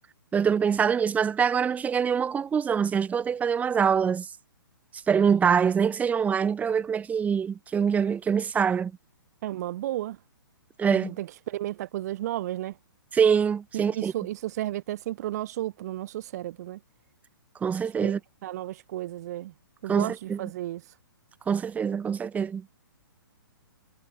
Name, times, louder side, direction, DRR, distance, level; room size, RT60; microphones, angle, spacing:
voice 1, 0.3-4.3 5.1-8.9 10.8-11.2 13.1-14.1 17.6-18.2 19.9-20.4 21.5-22.7, right 7 dB, 10° right, 2.0 m, -24 dB
voice 2, 9.4-10.2 10.9-12.8 13.7-16.8 18.0-18.1 18.4-19.5 19.8-20.8, right 14 dB, 45° right, 1.7 m, -33 dB
figure-of-eight pair, 125°, 12 cm